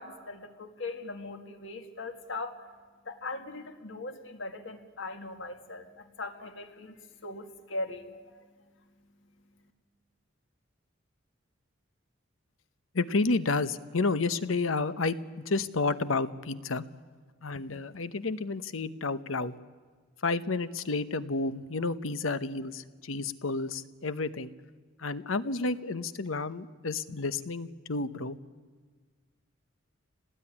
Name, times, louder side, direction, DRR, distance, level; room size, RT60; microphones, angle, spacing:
voice 1, 0.0-2.7 3.1-8.5, left 2 dB, 65° left, 6 dB, 2.1 m, -40 dB
voice 2, 12.9-15.2 15.5-16.8 17.4-19.5 20.2-24.5 25.0-28.4, left 3 dB, 90° left, 13 dB, 1.0 m, -30 dB
27.0 x 19.0 x 9.9 m, 1.5 s
head